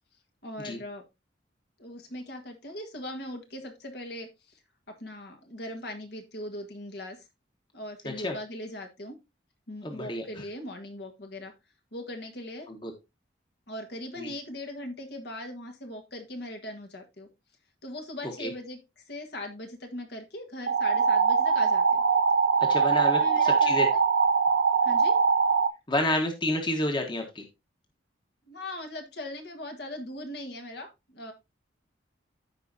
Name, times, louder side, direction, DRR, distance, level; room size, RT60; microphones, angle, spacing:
voice 1, 0.4-1.0 1.8-4.6 4.9-7.3 7.7-9.1 9.7-11.5 11.9-12.7 13.7-17.3 17.8-22.0 23.2-24.0 24.8-25.2 28.5-31.3, left 1 dB, 60° left, 4 dB, 1.6 m, -40 dB
voice 2, 9.8-10.2 12.7-12.9 14.2-14.3 18.4-18.5 22.7-23.9 25.9-27.4, left 1 dB, 25° left, 3 dB, 1.4 m, -29 dB
sound 1, 20.7-25.7, right 5 dB, 80° right, 0.6 m, -22 dB
14.5 x 4.9 x 2.7 m, 0.24 s
head